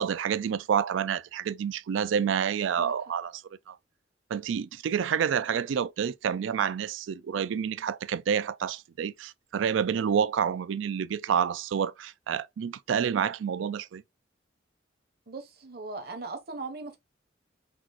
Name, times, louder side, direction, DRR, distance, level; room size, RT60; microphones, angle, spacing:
voice 1, 0.0-3.4 3.7-3.8 4.3-14.0, right 7 dB, 80° right, 0.3 m, -28 dB
voice 2, 15.3-17.0, right 3 dB, 50° right, 0.8 m, -39 dB
5.9 x 2.4 x 2.9 m
head